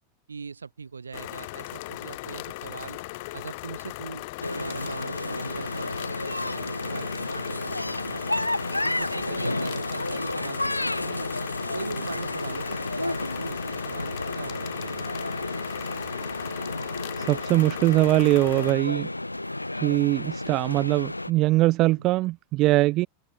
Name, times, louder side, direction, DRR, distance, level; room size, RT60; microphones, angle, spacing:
voice 1, 0.3-3.0 3.3-8.2 8.8-11.3 11.7-15.2, right 5 dB, 75° right, 5.0 m, -40 dB
sound 1, 1.1-18.7, left 22 dB, 50° left, 3.7 m, -38 dB
sound 2, 4.4-21.3, left 2 dB, 85° left, 1.4 m, -31 dB
voice 2, 17.2-19.1 19.8-23.1, right 18 dB, 40° right, 1.0 m, -22 dB
figure-of-eight pair, 90°, 0 cm